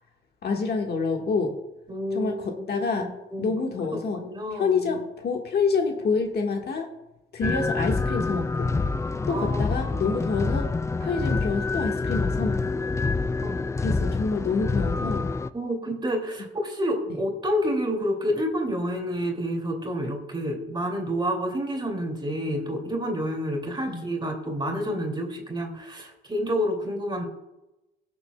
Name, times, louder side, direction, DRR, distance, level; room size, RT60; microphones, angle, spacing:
voice 1, 0.4-1.5 2.1-3.1 3.4-4.2 4.5-6.9 7.3-8.7 9.3-10.7 11.0-12.8 13.8-15.3 23.9-24.1, left 4 dB, 55° left, 2 dB, 1.5 m, -27 dB
voice 2, 1.9-3.5 3.9-4.8 9.3-9.7 13.4-13.8 15.5-27.2, equal, 25° right, 2 dB, 2.4 m, -29 dB
sound 1, 7.4-15.5, left 3 dB, 15° left, 0.3 m, -27 dB
20.5 x 7.0 x 2.2 m, 0.96 s
cardioid pair, 90°, 20 cm